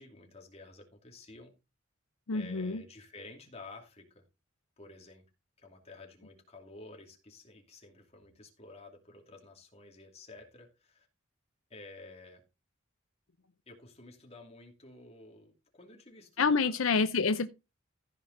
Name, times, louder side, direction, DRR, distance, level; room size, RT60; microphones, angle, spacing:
voice 1, 0.0-1.5 2.3-4.2 4.8-5.2 5.6-11.1 11.7-12.4 13.7-16.7, left 2 dB, 30° left, 2.6 m, -52 dB
voice 2, 2.3-2.8 16.4-17.5, left 4 dB, 85° left, 0.7 m, -27 dB
15.0 x 5.1 x 3.9 m
head